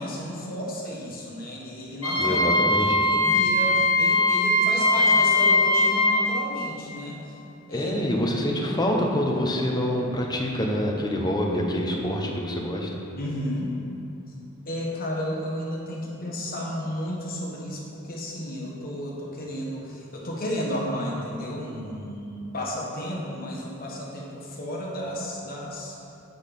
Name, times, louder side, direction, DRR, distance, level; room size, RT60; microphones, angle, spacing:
voice 1, 0.0-7.2 7.7-7.9 13.2-13.7 14.6-26.0, equal, 45° left, -3 dB, 1.3 m, -32 dB
Wind instrument woodwind instrument, 2.0-6.1, left 2 dB, 90° left, 1.6 m, -20 dB
voice 2, 2.2-3.0 7.7-12.9, equal, 20° left, 0 dB, 0.8 m, -26 dB
8.4 x 4.1 x 5.3 m, 2.7 s
head